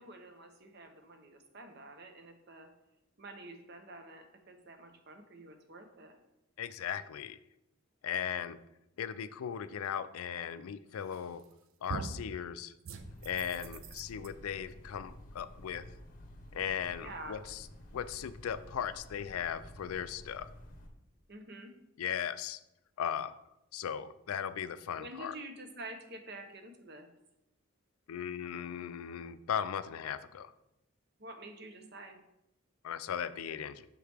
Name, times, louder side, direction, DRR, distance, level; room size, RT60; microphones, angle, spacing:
voice 1, 0.0-2.7 3.2-6.2 17.0-17.4 21.3-21.7 25.0-27.1 31.2-32.2, right 2 dB, 50° right, 6 dB, 0.8 m, -48 dB
voice 2, 6.6-7.4 8.0-8.6 9.0-11.4 11.8-12.7 13.2-15.9 16.5-17.7 17.9-20.5 22.0-22.6 23.0-23.3 23.7-25.4 28.1-30.5 32.8-33.9, left 8 dB, 85° left, 14 dB, 0.3 m, -37 dB
sound 1, 11.1-11.5 11.9-12.3 12.8-14.3, right 4 dB, 70° right, 0.5 m, -42 dB
sound 2, 13.0-20.9, left 1 dB, 40° left, 0.8 m, -52 dB
6.4 x 4.8 x 3.4 m, 0.85 s
head